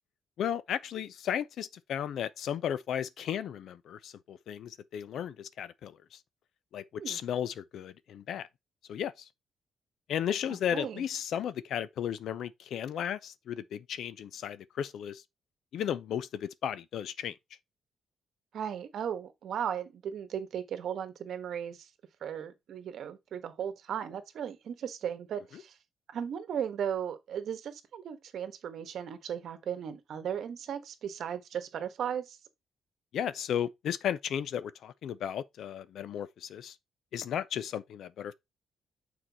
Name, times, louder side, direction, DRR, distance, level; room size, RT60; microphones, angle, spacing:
voice 1, 0.4-6.0 6.7-8.5 8.9-9.1 10.1-15.2 15.7-17.4 33.1-36.8 37.1-38.3, left 9 dB, 70° left, 0.5 m, -34 dB
voice 2, 10.5-11.0 18.5-21.8 22.2-25.7 26.1-32.4, right 8 dB, 65° right, 1.2 m, -36 dB
6.7 x 4.4 x 4.0 m
cardioid pair, 130°, 0 cm